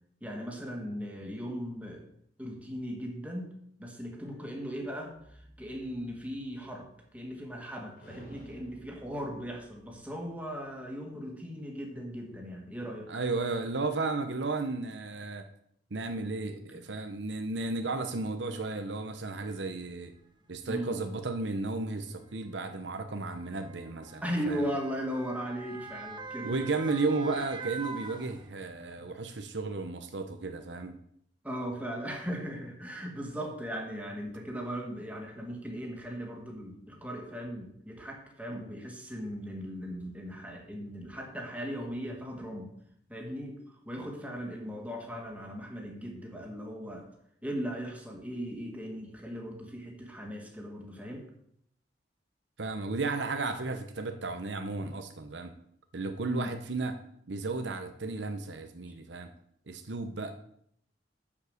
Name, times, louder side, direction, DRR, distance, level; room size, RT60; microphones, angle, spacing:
voice 1, 0.2-2.0 2.4-3.5 3.8-13.1 16.7-16.8 20.7-21.0 24.2-26.5 29.0-29.1 31.4-42.7 43.1-47.1 47.4-51.2 56.2-56.5 58.9-59.0, equal, 10° right, 0 dB, 1.9 m, -38 dB
sound 1, 4.2-7.6 8.0-10.6, right 1 dB, 60° left, 3.4 m, -54 dB
voice 2, 13.1-15.5 15.9-20.1 20.5-24.6 26.4-31.0 52.6-55.5 55.9-56.9 57.3-59.3 59.7-60.3, right 3 dB, 85° right, 7 dB, 0.9 m, -34 dB
Motor vehicle (road) / Siren, 19.0-19.1 20.0-20.2 21.3-28.9 29.3-29.4, right 4 dB, 25° right, 0.9 m, -45 dB
7.2 x 7.2 x 6.5 m, 0.71 s
head